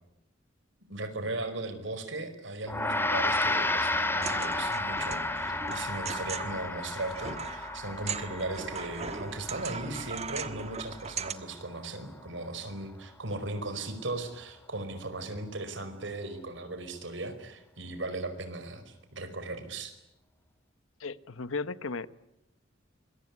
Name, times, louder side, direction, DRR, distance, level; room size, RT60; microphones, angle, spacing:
voice 1, 0.9-19.9, right 2 dB, 65° right, 10 dB, 5.0 m, -37 dB
Gong, 2.7-12.2, left 2 dB, 10° left, 2.6 m, -33 dB
sound 1, 4.2-11.3, right 6 dB, 35° right, 1.4 m, -39 dB
voice 2, 21.0-22.1, left 4 dB, 90° left, 15 dB, 1.1 m, -35 dB
26.5 x 23.0 x 9.7 m, 0.88 s
head